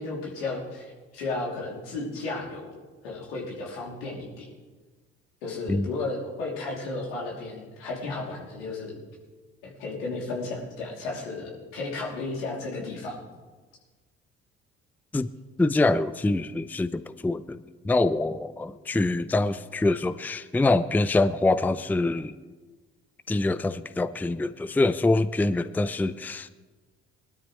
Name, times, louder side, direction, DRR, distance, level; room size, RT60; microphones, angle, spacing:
voice 1, 0.0-2.7 3.0-4.5 5.4-9.0 9.6-13.2, left 3 dB, 85° left, -2 dB, 3.0 m, -34 dB
voice 2, 15.6-22.4 23.3-26.5, left 2 dB, 5° left, 14 dB, 0.5 m, -25 dB
20.0 x 12.5 x 3.2 m, 1.3 s
hypercardioid pair, 60°, 29 cm